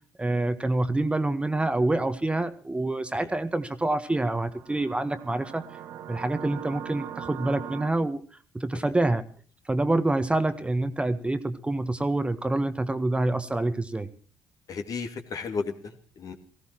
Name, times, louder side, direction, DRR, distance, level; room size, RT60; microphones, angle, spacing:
voice 1, 0.2-5.6 6.1-8.2 8.5-9.2 9.7-14.1, right 2 dB, 15° right, 10 dB, 1.5 m, -26 dB
sound 1, 3.9-7.9, right 9 dB, 60° right, 1.4 m, -41 dB
voice 2, 14.7-16.3, left 5 dB, 50° left, 6 dB, 2.5 m, -34 dB
19.0 x 16.5 x 4.5 m, 0.41 s
figure-of-eight pair, 45°, 8 cm